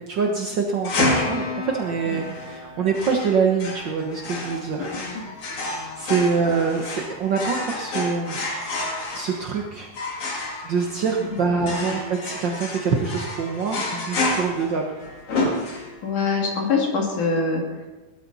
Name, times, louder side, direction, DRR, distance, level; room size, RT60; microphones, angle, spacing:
voice 1, 0.1-4.9 5.7-8.4 9.1-9.9 10.6-14.9, right 5 dB, 70° right, 1 dB, 1.0 m, -25 dB
sound 1, 0.8-16.2, left 2 dB, 50° left, 3.0 m, -29 dB
voice 2, 4.8-5.2 11.2-12.0 16.0-17.9, left 4 dB, 65° left, 0 dB, 4.0 m, -25 dB
18.5 x 13.0 x 4.1 m, 1.1 s
omnidirectional pair, 3.8 m